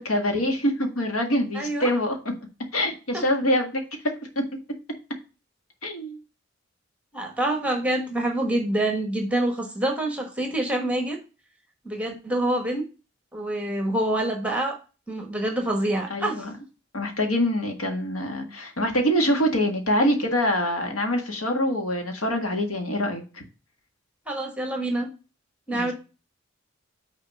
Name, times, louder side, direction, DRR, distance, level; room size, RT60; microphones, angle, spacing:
voice 1, 0.0-2.2 2.7-3.8 5.8-6.2 16.1-16.5 16.9-23.4 25.7-25.9, equal, 90° left, 4 dB, 1.7 m, -25 dB
voice 2, 1.5-1.9 3.1-3.2 7.1-11.2 11.8-12.8 13.3-14.8 15.1-16.4 24.3-25.1 25.7-25.9, right 1 dB, 5° right, 2 dB, 1.2 m, -26 dB
6.3 x 4.1 x 6.4 m, 0.33 s
head